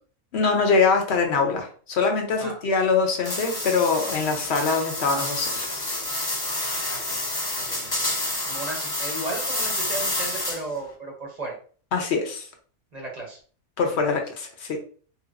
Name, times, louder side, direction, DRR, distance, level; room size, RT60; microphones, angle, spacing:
voice 1, 0.3-6.2 11.9-12.5 13.8-14.8, left 4 dB, 60° left, 3 dB, 0.8 m, -23 dB
sound 1, 3.2-10.8, left 1 dB, 25° left, 0.5 m, -29 dB
voice 2, 6.9-7.2 7.6-11.6 12.9-13.4 13.9-14.0, right 2 dB, 40° right, 0 dB, 0.7 m, -35 dB
3.3 x 2.9 x 2.4 m, 0.43 s
omnidirectional pair, 1.5 m